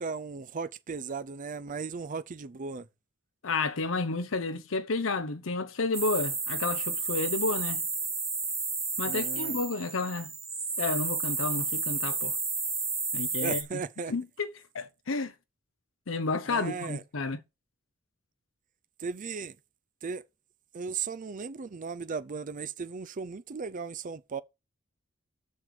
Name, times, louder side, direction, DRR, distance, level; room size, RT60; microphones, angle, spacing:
voice 1, 0.0-2.9 9.0-9.6 13.4-14.1 16.5-17.0 19.0-19.5 20.0-20.2 20.7-24.4, right 5 dB, 40° right, 0.5 m, -36 dB
voice 2, 3.4-7.8 9.0-10.3 10.8-12.4 13.1-13.6 14.1-15.3 16.1-17.4, left 3 dB, 70° left, 0.8 m, -31 dB
sound 1, 5.9-13.6, right 4 dB, 15° right, 1.6 m, -32 dB
6.7 x 6.4 x 6.9 m
head